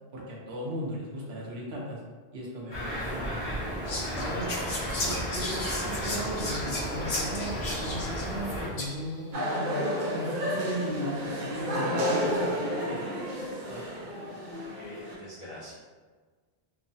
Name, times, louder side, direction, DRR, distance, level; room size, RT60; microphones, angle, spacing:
voice 1, 0.1-2.0 2.3-3.2 4.1-4.5 4.9-9.8 10.1-13.1, right 1 dB, 80° right, -3 dB, 1.0 m, -36 dB
sound 1, 2.7-8.7, equal, 25° left, 1.0 m, -34 dB
Whispering, 3.8-9.2, left 2 dB, 90° left, 0.9 m, -35 dB
sound 2, 9.3-15.2, equal, 55° right, 0.7 m, -31 dB
voice 2, 14.8-15.7, left 1 dB, 55° left, -7 dB, 0.3 m, -44 dB
3.0 x 2.1 x 2.6 m, 1.4 s
omnidirectional pair, 1.0 m